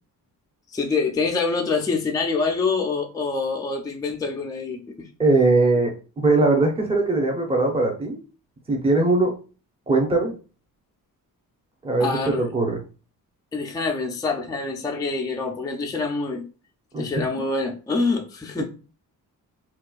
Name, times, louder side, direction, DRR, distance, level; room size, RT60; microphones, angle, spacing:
voice 1, 0.7-5.1 12.0-12.5 13.5-16.4 17.0-18.6, left 4 dB, 10° left, 2 dB, 0.4 m, -26 dB
voice 2, 5.2-8.2 8.7-9.3 9.9-10.3 11.8-12.1 12.4-12.8 16.9-17.1 18.6-18.7, right 2 dB, 15° right, 0 dB, 0.8 m, -20 dB
4.3 x 2.3 x 2.3 m, 0.35 s
wide cardioid pair, 145°, 36 cm